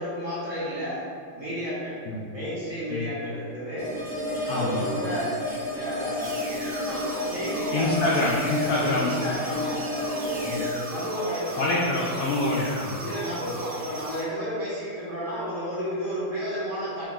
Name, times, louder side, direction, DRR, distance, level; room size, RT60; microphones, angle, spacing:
voice 1, 0.0-4.0 4.5-8.0 8.6-11.9 12.4-12.7 13.0-17.1, equal, 50° right, -9 dB, 1.0 m, -32 dB
sound 1, 3.8-12.8, left 1 dB, 25° right, 1.2 m, -32 dB
voice 2, 4.5-4.8 7.7-9.1 10.4-10.6 11.6-13.0, left 2 dB, 85° left, -4 dB, 0.8 m, -25 dB
sound 2, 6.2-14.2, right 2 dB, 75° right, 1.7 m, -38 dB
5.0 x 2.8 x 3.6 m, 2.4 s
omnidirectional pair, 2.3 m